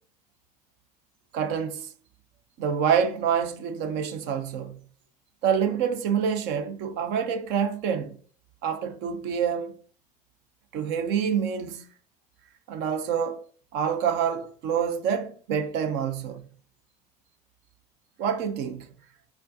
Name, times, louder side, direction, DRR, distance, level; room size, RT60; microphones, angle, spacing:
voice 1, 1.3-1.9 2.6-4.8 5.4-8.2 8.6-9.8 10.7-11.9 12.7-13.4 13.7-16.5 18.2-18.9, right 7 dB, 55° right, 0.7 m, -27 dB
4.5 x 4.3 x 2.7 m
figure-of-eight pair, 65°, 21 cm